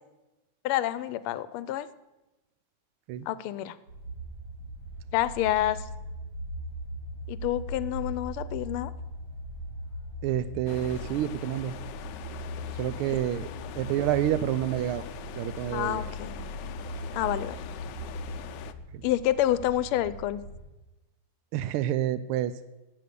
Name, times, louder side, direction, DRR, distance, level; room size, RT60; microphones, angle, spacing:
voice 1, 0.6-1.9 3.3-3.8 5.1-5.8 7.3-8.9 15.7-16.4 17.1-17.8 19.0-20.4, left 13 dB, 90° left, 15 dB, 1.5 m, -28 dB
sound 1, 3.9-20.7, equal, 60° right, 4.2 m, -39 dB
voice 2, 10.2-11.7 12.8-13.5 13.8-15.0 15.4-16.0 18.9-19.0 21.5-22.5, right 12 dB, 85° right, 13 dB, 1.5 m, -28 dB
sound 2, 10.7-18.7, left 10 dB, 70° left, 1.1 m, -43 dB
12.0 x 7.9 x 6.8 m, 1.0 s
omnidirectional pair, 2.3 m